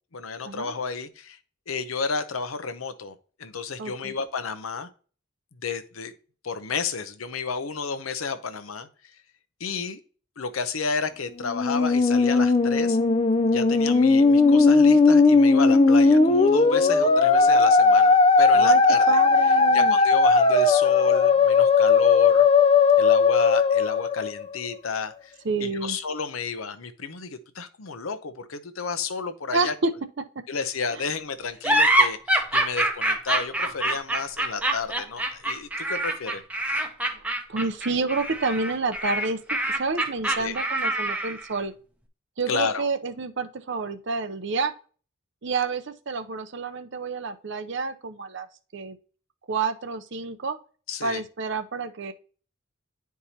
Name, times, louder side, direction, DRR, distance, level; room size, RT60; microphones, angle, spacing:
voice 1, 0.1-1.4 1.7-4.9 5.6-6.1 6.4-8.9 9.6-10.0 10.4-13.0 13.5-19.2 19.7-22.5 23.0-25.3 25.6-29.7 30.5-36.4 40.4-40.6 42.5-42.9 50.9-51.2, left 5 dB, 85° left, 11 dB, 0.8 m, -31 dB
voice 2, 3.8-4.1 18.5-18.8 19.1-20.0 25.4-26.0 29.5-29.9 30.9-31.0 37.1-37.2 37.5-41.7 42.4-44.7 45.4-48.5 48.7-49.0 49.5-50.6 51.0-52.1, right 4 dB, 60° right, 10 dB, 0.6 m, -29 dB
Musical instrument, 11.4-24.8, left 4 dB, 25° left, 0.4 m, -18 dB
sound 1, 31.6-41.5, right 1 dB, 5° right, 0.7 m, -25 dB
10.0 x 4.7 x 2.8 m, 0.39 s
head